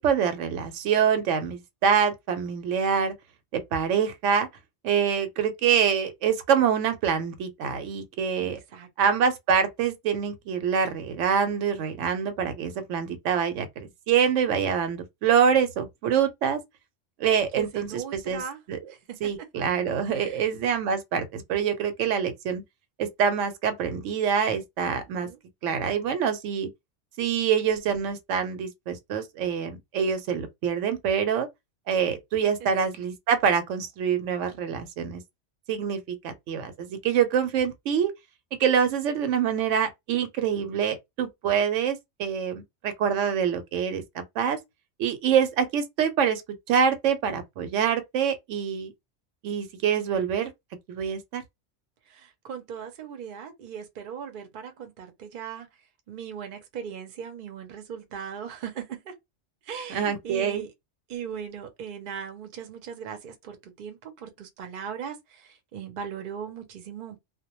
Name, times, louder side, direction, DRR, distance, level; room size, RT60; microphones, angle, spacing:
voice 1, 0.0-3.1 3.5-4.5 4.8-8.6 9.0-16.6 17.2-18.4 18.7-18.8 19.2-22.6 23.0-25.3 25.6-26.7 27.2-31.5 31.9-35.2 35.7-38.1 38.6-44.6 45.0-46.4 46.7-48.9 49.4-50.5 50.9-51.4 59.9-60.6, right 7 dB, 85° right, 0.9 m, -25 dB
voice 2, 8.4-8.9 17.5-18.6 18.9-19.5 20.1-20.5 24.8-25.4 32.4-32.8 52.1-55.7 56.1-59.1 59.6-60.7 61.1-67.2, right 7 dB, 55° right, 0.6 m, -39 dB
2.1 x 2.1 x 2.9 m
omnidirectional pair, 1.2 m